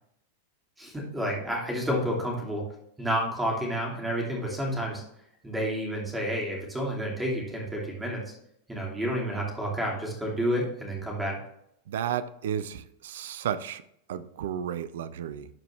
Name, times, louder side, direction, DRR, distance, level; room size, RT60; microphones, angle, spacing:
voice 1, 0.8-2.6 3.0-5.0 5.4-8.3 8.7-11.4, equal, 10° right, -2 dB, 2.7 m, -30 dB
voice 2, 11.9-13.8 14.1-15.5, right 9 dB, 60° right, 15 dB, 0.5 m, -33 dB
12.0 x 4.7 x 3.3 m, 0.74 s
figure-of-eight pair, 90°, 0 cm